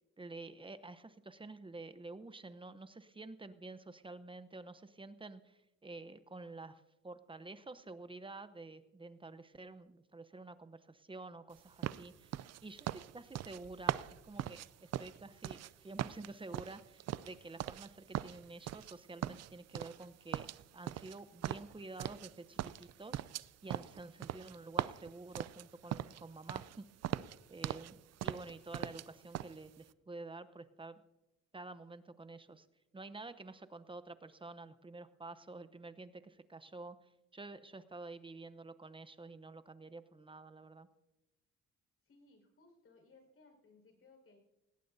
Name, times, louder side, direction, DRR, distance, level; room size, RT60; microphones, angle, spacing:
voice 1, 0.2-14.0 14.2-20.5 20.7-26.9 27.5-31.0 31.5-32.7 32.9-40.9, right 3 dB, 15° right, 13 dB, 0.8 m, -50 dB
sound 1, 11.8-15.7 16.0-17.9 18.1-18.9 19.2-20.1 20.3-22.3 22.6-26.2 26.5-26.8 27.0-27.9 28.2-29.1 29.3-29.5, right 12 dB, 60° right, 0.5 m, -40 dB
voice 2, 42.0-44.4, left 3 dB, 45° left, 2 dB, 5.1 m, -63 dB
19.0 x 17.0 x 2.7 m, 0.97 s
cardioid pair, 90°, 30 cm